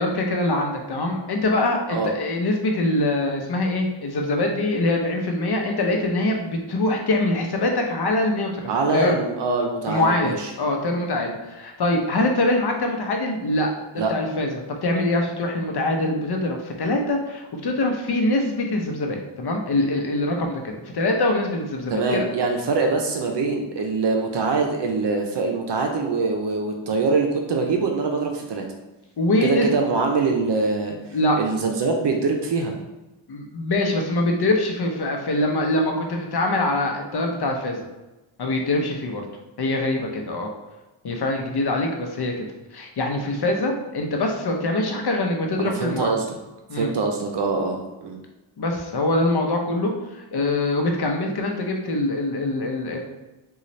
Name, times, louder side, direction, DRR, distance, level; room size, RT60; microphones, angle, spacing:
voice 1, 0.0-9.2 9.9-13.7 14.1-22.3 29.2-29.8 31.1-31.4 33.3-37.9 38.4-39.3 39.6-40.5 41.0-42.4 42.7-46.1 46.7-46.9 48.6-53.0, left 2 dB, 50° left, 2 dB, 0.8 m, -24 dB
voice 2, 8.7-10.5 14.0-14.1 21.9-28.6 29.4-31.0 31.4-32.7 45.6-46.4 46.7-48.2, right 3 dB, 55° right, 2 dB, 0.7 m, -23 dB
3.9 x 2.4 x 3.1 m, 1.1 s
cardioid pair, 70°, 49 cm